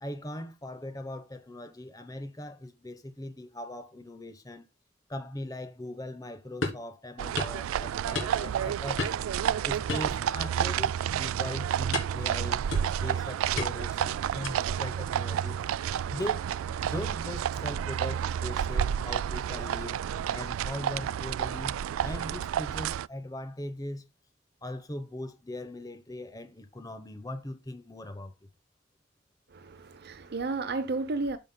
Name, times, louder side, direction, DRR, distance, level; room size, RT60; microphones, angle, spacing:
voice 1, 0.0-4.6 5.1-9.1 9.6-15.6 16.1-20.0 20.3-24.1 24.6-28.3, left 1 dB, 20° left, 0.9 m, -40 dB
sound 1, 6.6-6.9 7.4-7.6 8.1-8.6 9.0-9.3 9.9-10.7 11.0-11.2 11.9-12.3 12.7-13.1 13.6-14.0 14.4-14.8, left 3 dB, 70° left, 2.9 m, -34 dB
sound 2, 7.2-23.1, right 9 dB, 90° right, 0.3 m, -30 dB
voice 2, 29.5-31.4, right 3 dB, 50° right, 0.6 m, -32 dB
12.5 x 5.7 x 2.2 m
head